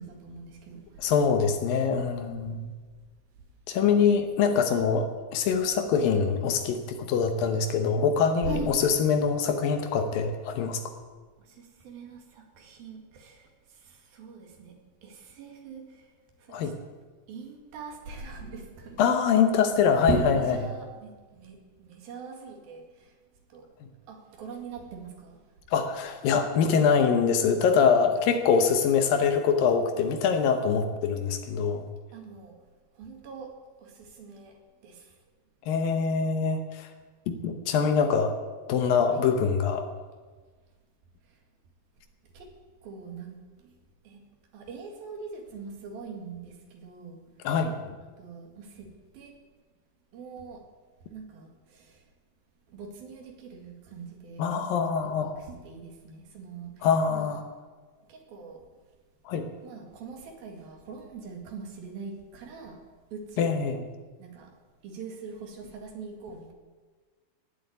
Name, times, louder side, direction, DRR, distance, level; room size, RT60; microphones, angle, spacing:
voice 1, 0.0-1.1 2.5-2.6 8.4-8.7 11.4-14.7 15.0-16.1 16.5-16.7 17.3-19.0 19.8-23.1 23.5-23.6 24.1-25.4 32.1-32.5 33.0-33.5 33.8-34.5 34.8-35.1 39.1-39.2 42.3-42.5 42.8-43.3 44.1-44.2 44.5-47.2 48.2-48.9 49.1-49.4 50.1-50.6 51.1-52.0 52.7-57.4 58.1-58.6 59.6-62.8 63.1-63.7 64.2-64.5 64.8-66.5, right 3 dB, 70° right, 2 dB, 3.9 m, -41 dB
voice 2, 1.0-2.7 3.7-10.8 16.5-16.7 19.0-20.6 25.7-31.8 35.7-36.9 37.3-38.3 38.7-39.8 47.4-47.7 54.4-55.4 56.8-57.4 59.3-59.5 63.4-63.9, left 6 dB, 70° left, 7 dB, 2.6 m, -24 dB
18.0 x 7.9 x 9.5 m, 1.4 s
omnidirectional pair, 4.5 m